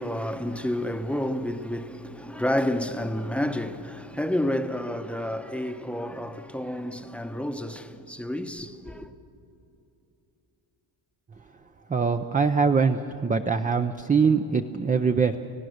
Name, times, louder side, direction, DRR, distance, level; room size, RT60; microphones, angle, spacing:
voice 1, 0.0-9.1, left 1 dB, 5° left, 0.8 m, -30 dB
voice 2, 11.9-15.4, right 5 dB, 20° right, 0.5 m, -23 dB
29.5 x 16.5 x 6.5 m
cardioid pair, 130°, 47 cm